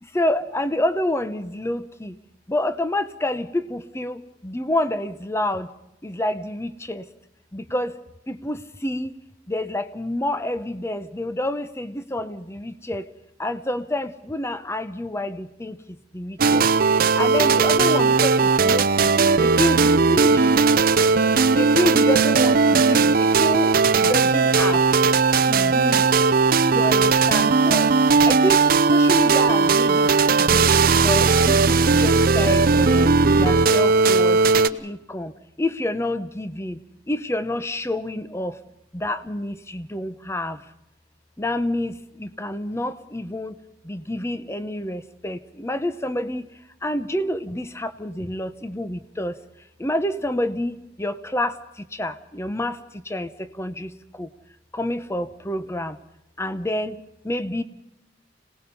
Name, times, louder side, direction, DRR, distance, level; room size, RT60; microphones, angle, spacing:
voice 1, 0.0-2.2 2.5-5.7 6.0-7.1 7.5-8.0 8.3-9.2 9.5-13.1 13.4-16.7 17.2-20.5 21.5-24.8 25.4-26.1 26.7-27.9 28.2-28.6 28.9-30.7 31.0-34.4 34.7-35.3 35.6-36.8 37.1-38.6 38.9-40.6 41.4-43.6 43.8-46.5 46.8-49.4 49.8-54.3 54.7-56.0 56.4-57.6, left 1 dB, 15° left, 12 dB, 0.9 m, -28 dB
sound 1, 16.4-34.7, right 4 dB, 50° right, 0.7 m, -17 dB
27.0 x 18.5 x 5.5 m, 0.87 s
head